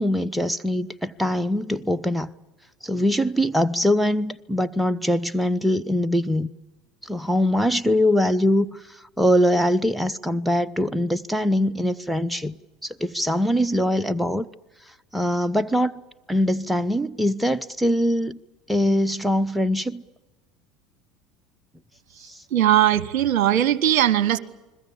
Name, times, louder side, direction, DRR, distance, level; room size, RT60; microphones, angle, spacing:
voice 1, 0.0-2.3 2.8-6.5 7.0-12.6 12.8-14.5 15.1-15.9 16.3-18.4 18.7-20.0 22.2-22.4, equal, 5° right, 0.7 m, -22 dB
voice 2, 22.5-24.4, right 11 dB, 55° right, 1.1 m, -19 dB
29.5 x 21.0 x 7.3 m
figure-of-eight pair, 70°, 0 cm